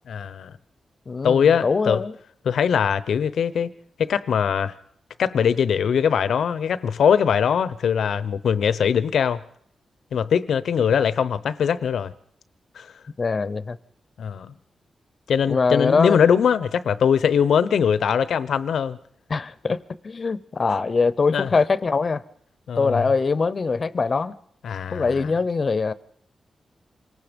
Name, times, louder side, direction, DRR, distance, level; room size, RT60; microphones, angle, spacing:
voice 1, 0.1-0.5 1.2-2.0 2.4-3.7 4.0-4.7 5.2-9.4 10.1-12.1 12.8-12.9 14.2-14.5 15.3-19.0 21.3-21.5 22.7-23.0 24.6-25.3, left 7 dB, 90° left, 0.8 m, -21 dB
voice 2, 1.1-2.1 13.2-13.8 15.5-16.2 19.3-22.2 22.8-24.3 24.9-25.9, left 4 dB, 45° left, 0.8 m, -23 dB
27.0 x 19.0 x 5.3 m
cardioid pair, 95°, 0 cm